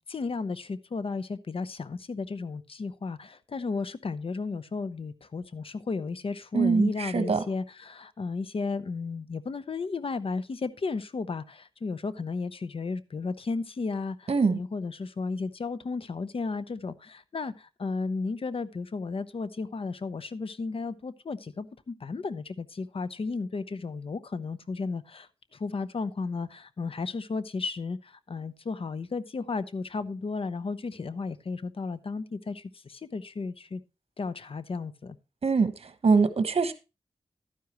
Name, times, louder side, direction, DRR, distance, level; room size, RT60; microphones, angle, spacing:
voice 1, 0.1-33.8 34.2-35.2, left 4 dB, 60° left, 0.8 m, -34 dB
voice 2, 6.5-7.4 14.3-14.6 35.4-36.7, right 4 dB, 70° right, 1.2 m, -23 dB
12.0 x 9.7 x 3.0 m
wide cardioid pair, 65°, 11 cm